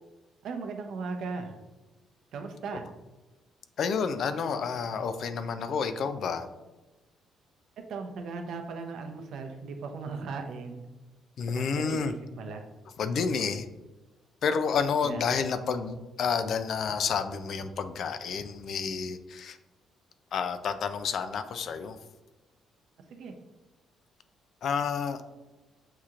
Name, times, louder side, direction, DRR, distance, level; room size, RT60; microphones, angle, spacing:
voice 1, 0.4-1.5 2.3-2.8 7.9-10.8 11.6-12.7 15.0-15.2 23.1-23.3, right 4 dB, 65° right, 5 dB, 0.6 m, -37 dB
voice 2, 3.8-6.5 11.4-12.1 13.0-13.7 14.4-19.6 20.3-22.0 24.6-25.2, left 6 dB, 55° left, 10 dB, 0.3 m, -30 dB
6.4 x 2.9 x 2.4 m, 1.1 s
cardioid pair, 125°, 0 cm